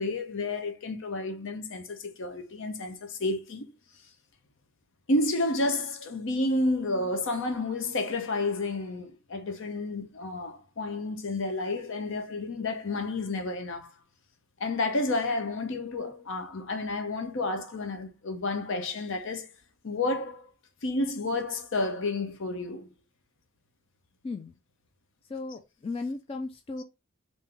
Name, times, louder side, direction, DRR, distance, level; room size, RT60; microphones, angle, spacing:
voice 1, 0.0-3.7 5.1-13.9 14.6-19.5 19.8-20.5 20.8-22.9 26.8-26.9, left 2 dB, 65° left, 0.7 m, -30 dB
voice 2, 25.3-26.8, left 3 dB, 25° left, 0.3 m, -35 dB
3.7 x 2.7 x 3.2 m
head